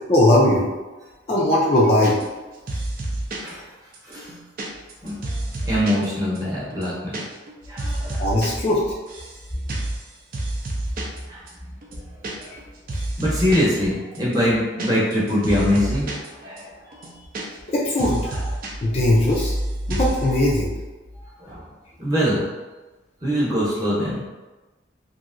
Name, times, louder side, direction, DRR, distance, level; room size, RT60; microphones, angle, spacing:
voice 1, 0.1-0.7 1.3-2.2 8.2-8.8 12.5-12.6 17.7-18.2 18.8-19.5 19.9-20.7, left 1 dB, 30° left, -4 dB, 0.4 m, -18 dB
sound 1, 2.0-2.4 2.7-3.5 3.9-6.1 6.3-6.4 6.7-7.2 7.5-8.5 8.7-9.4 9.7-10.0 10.3-11.2 11.5-11.6 11.8-12.6 12.9-13.7 14.1-16.3 16.6-16.7 16.9-17.7 18.0-18.7 19.0-19.6 19.9-20.2, right 2 dB, 50° right, 0.5 m, -29 dB
voice 2, 5.0-5.3 5.6-7.2 7.7-8.3 11.3-11.4 13.2-17.0 18.3-18.5 21.4-21.6 22.0-22.5 23.2-24.2, equal, 20° right, -8 dB, 0.9 m, -23 dB
2.9 x 2.6 x 2.5 m, 1.2 s
head